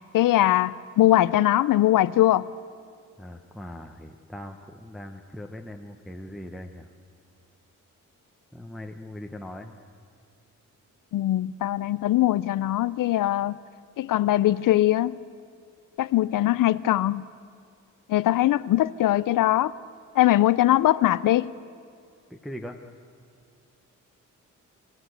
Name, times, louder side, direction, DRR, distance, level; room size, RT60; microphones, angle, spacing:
voice 1, 0.1-2.5 11.1-13.6 14.0-15.2 16.0-17.2 18.1-19.7 20.2-21.5, left 14 dB, 85° left, 0.5 m, -21 dB
voice 2, 3.2-6.9 8.5-9.7 22.3-22.8, left 1 dB, ahead, 0.9 m, -40 dB
27.0 x 16.0 x 8.1 m
cardioid pair, 115°, 32 cm